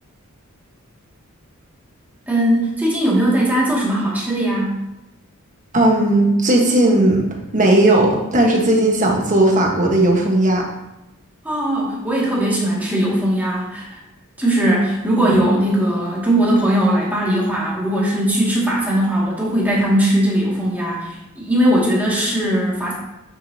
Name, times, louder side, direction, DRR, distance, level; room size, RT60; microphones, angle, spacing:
voice 1, 2.3-4.8 11.4-14.0 14.4-22.9, right 1 dB, 10° right, -6 dB, 2.3 m, -19 dB
voice 2, 5.7-7.2 7.5-10.6, right 1 dB, 35° right, 0 dB, 1.4 m, -15 dB
9.4 x 6.3 x 2.9 m, 0.94 s
head